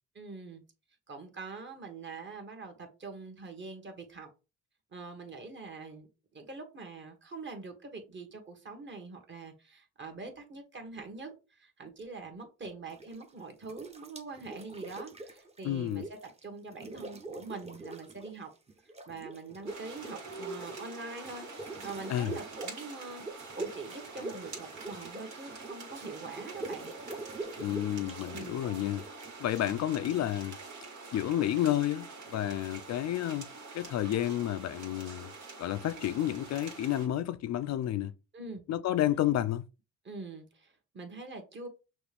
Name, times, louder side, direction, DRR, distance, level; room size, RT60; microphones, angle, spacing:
voice 1, 0.1-0.6 1.1-4.3 4.9-6.1 6.3-18.5 19.1-23.2 23.5-26.9 28.3-28.6 38.3-38.6 40.0-41.7, right 3 dB, 40° right, 1.5 m, -44 dB
sound 1, 12.9-13.3 13.6-16.4 16.7-18.4 18.7-30.2, right 2 dB, 20° right, 0.9 m, -44 dB
voice 2, 15.6-16.0 22.1-22.3 27.6-29.0 29.4-30.6 31.1-33.5 33.7-35.3 35.6-38.1 38.7-39.7, left 12 dB, 60° left, 0.4 m, -30 dB
sound 2, 19.7-37.1, right 4 dB, 75° right, 1.9 m, -46 dB
6.0 x 2.5 x 3.4 m
cardioid pair, 90°, 30 cm